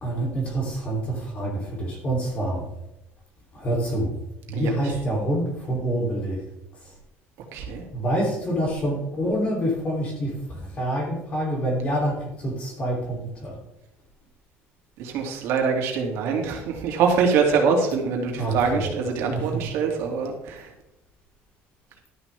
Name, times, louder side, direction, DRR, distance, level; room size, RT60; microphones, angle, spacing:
voice 1, 0.0-2.6 3.6-4.1 4.5-6.4 7.9-13.6 18.3-18.9 19.3-19.6, right 1 dB, 25° left, 0 dB, 3.1 m, -26 dB
voice 2, 4.5-5.0 7.5-7.8 15.0-20.7, right 5 dB, 65° right, 1 dB, 2.6 m, -24 dB
12.5 x 11.0 x 3.5 m, 0.88 s
cardioid pair, 180°, 5 cm